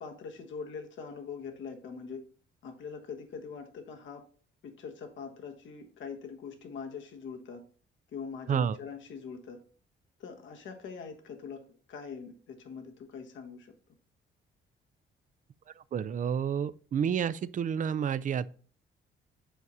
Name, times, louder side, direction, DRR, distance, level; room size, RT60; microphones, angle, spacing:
voice 1, 0.0-2.2 2.6-4.2 4.6-7.6 8.1-9.6 10.2-13.7, left 5 dB, 70° left, 1.3 m, -43 dB
voice 2, 15.9-18.5, right 8 dB, 40° right, 0.4 m, -29 dB
7.9 x 4.7 x 2.7 m
cardioid pair, 90°, 20 cm